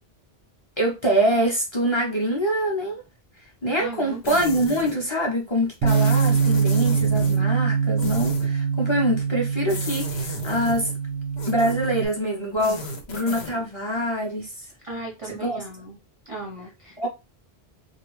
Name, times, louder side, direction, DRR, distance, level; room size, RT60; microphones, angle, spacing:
voice 1, 0.8-2.9 3.6-10.9 11.5-14.6 15.2-15.6 17.0-17.1, equal, 35° left, 0.6 m, -24 dB
voice 2, 3.8-4.2 14.8-16.0 16.3-17.1, right 2 dB, 40° right, 0.5 m, -36 dB
sound 1, 4.2-5.0 5.9-7.4 8.0-8.5 9.7-10.9 11.4-11.9 12.5-13.6, left 3 dB, 80° left, 1.0 m, -35 dB
Bass guitar, 5.8-12.1, right 6 dB, 90° right, 0.8 m, -23 dB
2.4 x 2.2 x 3.0 m
omnidirectional pair, 1.1 m